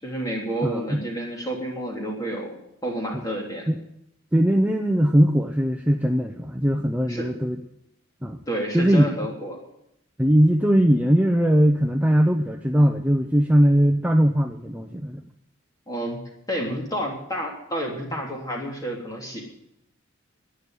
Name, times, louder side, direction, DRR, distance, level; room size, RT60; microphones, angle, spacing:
voice 1, 0.0-2.5 2.8-3.7 7.1-7.3 8.5-9.6 15.9-16.2 16.5-19.4, right 1 dB, 20° left, -1 dB, 3.3 m, -30 dB
voice 2, 0.6-1.0 3.1-3.2 3.7-3.8 4.3-7.6 8.2-8.4 8.7-9.1 10.2-15.2, equal, 5° right, 4 dB, 0.6 m, -20 dB
11.5 x 9.9 x 9.2 m, 0.80 s
head